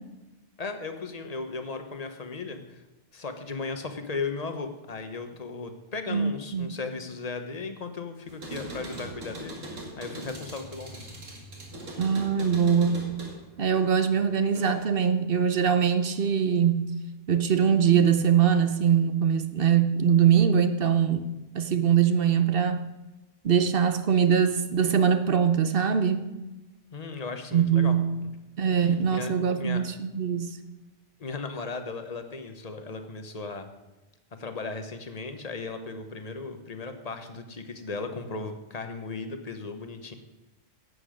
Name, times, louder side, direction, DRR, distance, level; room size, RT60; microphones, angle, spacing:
voice 1, 0.6-2.8 3.1-11.1 26.9-28.0 28.8-29.9 31.2-33.7 34.3-40.1, left 4 dB, 35° left, 7 dB, 1.0 m, -36 dB
voice 2, 6.1-6.7 12.0-13.0 13.6-16.9 17.3-21.2 21.5-22.8 23.4-26.3 27.5-28.1 28.6-30.6, right 7 dB, 55° right, 10 dB, 0.8 m, -22 dB
sound 1, 8.3-15.0 15.4-16.2, right 1 dB, 85° right, 2.3 m, -41 dB
11.5 x 8.4 x 5.0 m, 1.1 s
omnidirectional pair, 1.3 m